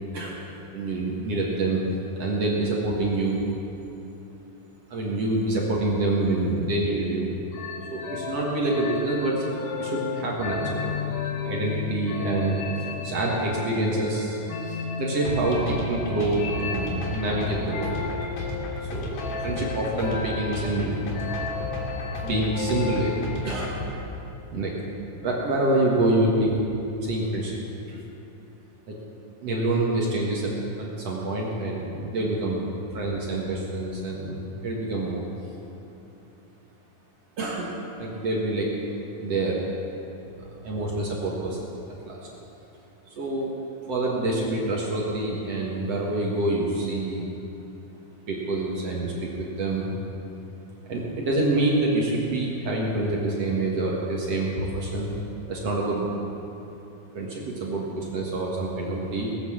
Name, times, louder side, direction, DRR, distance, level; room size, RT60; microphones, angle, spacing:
voice 1, 0.7-1.8 2.2-3.4 4.9-7.3 7.9-9.4 9.8-10.9 11.4-14.4 14.6-18.0 18.8-21.0 22.2-23.1 23.4-23.8 24.5-24.7 25.2-26.5 27.0-27.6 27.9-28.0 28.9-29.0 29.4-35.2 37.4-37.7 38.0-38.7 39.2-39.6 40.4-41.7 42.0-42.2 43.1-43.5 43.9-47.3 48.3-49.9 50.9-55.1 55.5-56.1 57.1-59.4, right 2 dB, 50° right, -3 dB, 2.3 m, -26 dB
sound 1, 7.5-23.9, left 5 dB, 65° left, 2.5 m, -34 dB
sound 2, 15.2-23.9, equal, 80° left, 4.3 m, -34 dB
19.0 x 8.1 x 7.3 m, 3.0 s
omnidirectional pair, 4.2 m